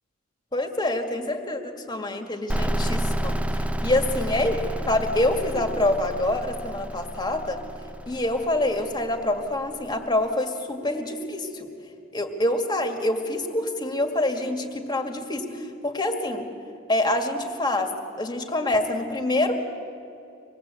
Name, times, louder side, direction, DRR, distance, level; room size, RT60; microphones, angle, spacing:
voice 1, 0.5-4.6 4.9-7.6 8.1-11.7 12.1-16.5 16.9-19.5, left 1 dB, 20° left, 4 dB, 1.9 m, -26 dB
sound 1, 2.5-10.0, right 1 dB, 5° right, 0.5 m, -30 dB
26.0 x 20.0 x 8.1 m, 2.8 s
head